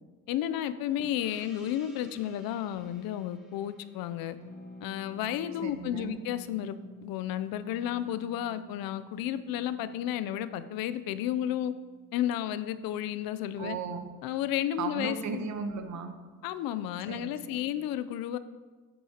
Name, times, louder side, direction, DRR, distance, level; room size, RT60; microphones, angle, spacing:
voice 1, 0.3-4.4 4.8-11.7 12.1-13.8 14.2-15.4 16.4-18.4, left 11 dB, 75° left, 13 dB, 0.5 m, -32 dB
Gong, 1.2-6.2, equal, ahead, 1.4 m, -58 dB
Harp, 4.4-14.0 14.3-14.4 14.5-14.9, left 1 dB, 20° left, 1.2 m, -52 dB
voice 2, 5.6-6.2 13.6-14.1 14.8-16.1 17.1-17.7, right 5 dB, 50° right, 7 dB, 1.0 m, -36 dB
8.5 x 8.3 x 2.9 m, 1.3 s
cardioid pair, 110°, 36 cm